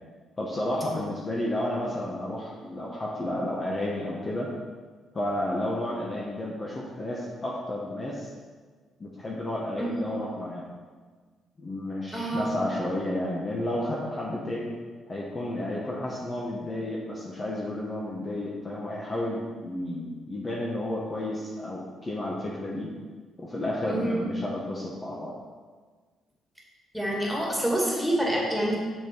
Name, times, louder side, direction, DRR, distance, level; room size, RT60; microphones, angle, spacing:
voice 1, 0.4-4.5 5.1-8.3 9.0-10.7 11.6-14.7 15.1-22.9 23.4-25.3, left 1 dB, 30° left, -4 dB, 1.2 m, -31 dB
voice 2, 12.1-12.5 23.9-24.2 26.9-28.8, right 1 dB, ahead, -4 dB, 2.3 m, -27 dB
7.0 x 6.0 x 4.6 m, 1.5 s
cardioid pair, 90°, 0 cm